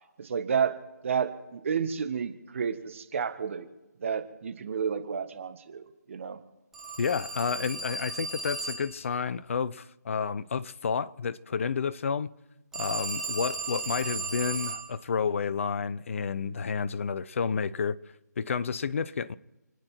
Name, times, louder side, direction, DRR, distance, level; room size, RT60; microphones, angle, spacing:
voice 1, 0.2-0.8 1.0-3.7 4.0-6.4, right 7 dB, 45° right, 1.7 m, -31 dB
Telephone, 6.7-9.0 12.7-14.9, right 3 dB, 5° right, 1.5 m, -35 dB
voice 2, 7.0-12.3 12.7-18.0 18.4-19.3, left 6 dB, 45° left, 0.6 m, -30 dB
29.5 x 9.8 x 4.5 m
figure-of-eight pair, 155°, 10 cm